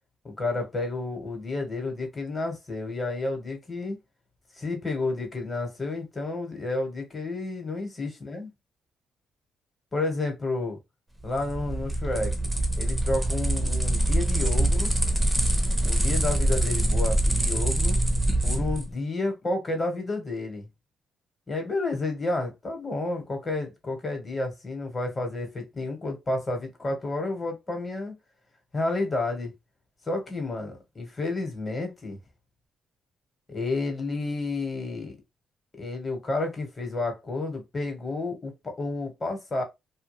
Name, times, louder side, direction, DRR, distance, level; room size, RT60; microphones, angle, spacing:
voice 1, 0.2-4.0 4.6-8.5 9.9-10.8 11.2-12.3 12.8-14.9 15.8-18.0 18.4-20.7 21.5-28.2 28.7-29.5 30.1-32.2 33.5-35.2 35.8-39.6, left 2 dB, 30° left, 1.1 m, -30 dB
sound 1, 11.2-18.9, right 1 dB, 10° right, 0.7 m, -24 dB
2.3 x 2.2 x 3.0 m
cardioid pair, 90°, 0 cm